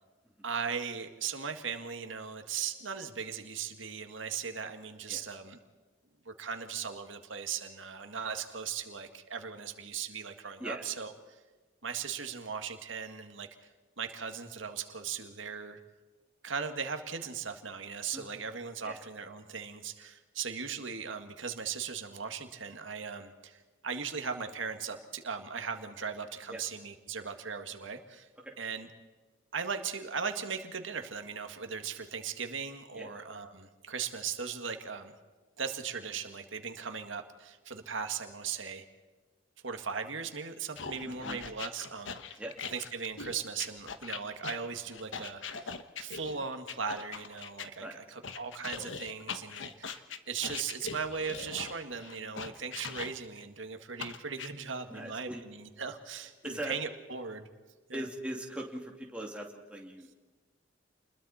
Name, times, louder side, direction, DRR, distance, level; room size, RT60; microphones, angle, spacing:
voice 1, 0.4-5.6 6.3-11.4 11.8-13.7 14.0-15.8 16.4-28.3 28.6-28.9 29.5-35.1 35.6-38.8 39.6-45.7 46.0-57.5 57.9-58.1, right 6 dB, 85° right, 6 dB, 1.9 m, -38 dB
sound 1, 40.8-47.7 48.2-53.4 54.0-54.5, left 5 dB, 80° left, 1.3 m, -41 dB
voice 2, 41.1-41.4 42.4-42.5 47.8-48.0 54.9-55.4 56.4-56.8 57.9-60.1, right 1 dB, 5° right, 0 dB, 2.6 m, -40 dB
29.0 x 21.5 x 4.3 m, 1.3 s
head